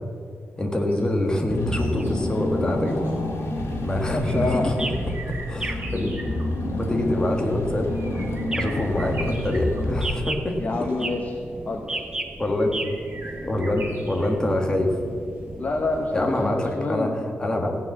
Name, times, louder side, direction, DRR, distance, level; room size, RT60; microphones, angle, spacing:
voice 1, 0.6-3.0 3.8-4.8 5.0-5.1 5.5-6.2 6.8-8.3 8.5-10.6 12.4-12.8 13.4-15.0 16.1-17.1 17.4-17.8, left 1 dB, 15° left, 2 dB, 1.6 m, -25 dB
sound 1, 0.8-16.7 17.0-17.1, right 2 dB, 50° right, 3.2 m, -44 dB
sound 2, 1.2-16.5, right 2 dB, 15° right, 1.0 m, -37 dB
Car / Engine, 1.5-10.7, left 1 dB, 85° left, 2.5 m, -29 dB
voice 2, 4.1-4.7 10.6-11.4 11.7-12.1 15.6-17.2, left 2 dB, 35° left, 3 dB, 1.0 m, -27 dB
15.0 x 9.1 x 7.3 m, 2.3 s
wide cardioid pair, 165°, 4 cm